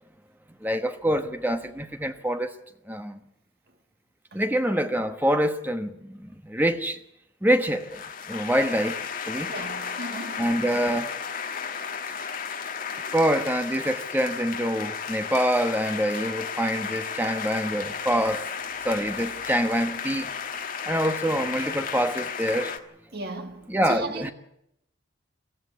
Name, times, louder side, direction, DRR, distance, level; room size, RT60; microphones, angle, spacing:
voice 1, 0.6-2.5 2.9-3.2 4.3-7.0 7.4-9.5 10.4-11.1 13.0-18.5 18.8-20.3 20.9-22.8 23.7-24.3, equal, 10° right, 1.1 m, -26 dB
sound 1, 7.6-22.8, left 6 dB, 45° left, 1.4 m, -34 dB
voice 2, 9.5-10.5 23.1-24.3, right 1 dB, 50° right, 2.0 m, -35 dB
22.5 x 14.0 x 9.4 m
head